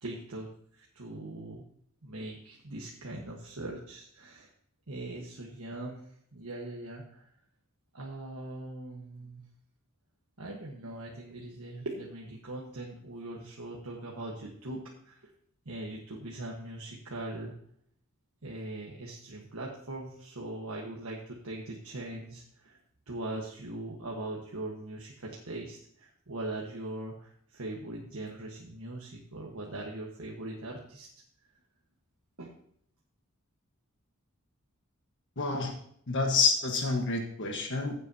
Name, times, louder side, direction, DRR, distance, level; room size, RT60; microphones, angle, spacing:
voice 1, 0.0-1.6 2.0-4.5 4.9-6.0 6.3-7.3 7.9-9.4 10.4-15.3 15.6-17.5 18.4-22.8 23.1-31.1 32.4-32.5, right 2 dB, 80° right, -2 dB, 1.4 m, -41 dB
voice 2, 35.4-35.7 36.1-37.9, left 4 dB, 60° left, 3 dB, 1.4 m, -28 dB
15.0 x 8.2 x 2.8 m, 0.66 s
head